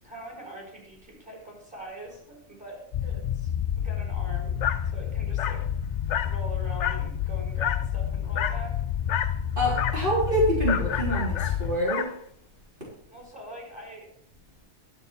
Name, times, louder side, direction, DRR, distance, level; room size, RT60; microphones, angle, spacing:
voice 1, 0.0-3.5 3.8-4.6 4.9-5.6 6.2-8.8 13.1-14.1, right 1 dB, 5° right, -2 dB, 4.5 m, -43 dB
sound 1, 2.9-11.8, left 9 dB, 55° left, 0.5 m, -29 dB
Dog, 4.6-4.8 5.4-5.6 6.1-6.4 6.8-7.1 7.6-7.9 8.4-8.6 9.1-9.4 9.7-10.0 10.7-12.2, left 9 dB, 80° left, 1.0 m, -30 dB
voice 2, 9.6-12.1, right 1 dB, 50° right, -6 dB, 3.8 m, -26 dB
11.5 x 8.0 x 4.4 m, 0.69 s
omnidirectional pair, 1.2 m